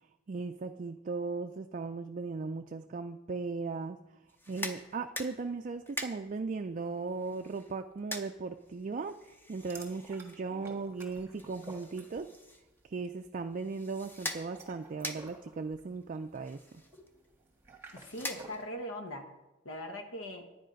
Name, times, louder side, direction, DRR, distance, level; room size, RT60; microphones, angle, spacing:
voice 1, 0.3-4.0 4.5-12.3 12.8-16.8, right 4 dB, 40° right, 6 dB, 0.4 m, -37 dB
sound 1, 4.3-18.9, left 1 dB, 10° left, 0.7 m, -46 dB
sound 2, 9.6-12.5 12.8-13.1 14.3-18.7, right 1 dB, 10° right, 1.6 m, -52 dB
voice 2, 17.9-19.3 19.6-20.5, left 1 dB, 75° left, 5 dB, 1.0 m, -41 dB
10.0 x 9.9 x 5.2 m, 1.1 s
head